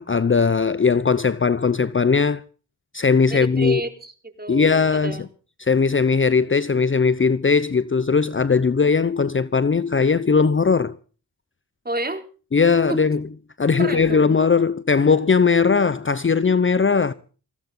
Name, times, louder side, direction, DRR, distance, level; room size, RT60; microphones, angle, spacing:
voice 1, 0.0-2.4 2.9-3.8 4.5-5.2 5.6-10.9 12.5-13.2 13.6-17.1, left 5 dB, 30° left, 0.9 m, -19 dB
voice 2, 3.3-5.3 11.8-12.2 12.9-13.0 13.8-14.3, right 2 dB, 25° right, 4.1 m, -30 dB
20.5 x 15.5 x 3.9 m
cardioid pair, 55°, 39 cm